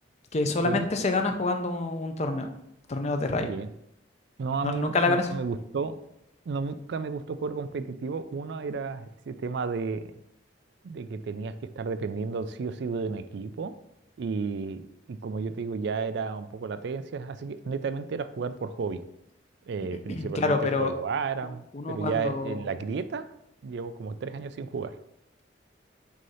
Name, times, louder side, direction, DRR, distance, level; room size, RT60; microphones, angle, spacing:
voice 1, 0.3-2.5 2.9-3.5 4.6-5.3 20.1-20.9 21.7-22.6, left 3 dB, 35° left, 6 dB, 0.6 m, -27 dB
voice 2, 3.4-3.7 4.4-5.9 6.5-10.0 10.8-13.7 14.2-19.0 19.7-23.3 23.6-25.0, right 5 dB, 60° right, 12 dB, 0.4 m, -32 dB
6.2 x 2.8 x 5.5 m, 0.77 s
head